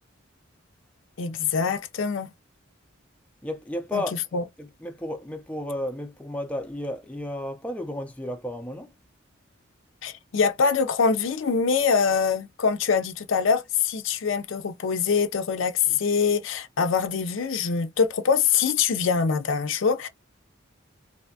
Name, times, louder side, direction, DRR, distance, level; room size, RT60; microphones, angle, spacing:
voice 1, 1.2-2.3 3.9-4.0 4.3-4.4 10.0-20.1, left 6 dB, 75° left, 0.5 m, -24 dB
voice 2, 3.4-8.9 15.9-16.0, left 1 dB, 5° left, 0.4 m, -33 dB
3.3 x 2.7 x 2.6 m
head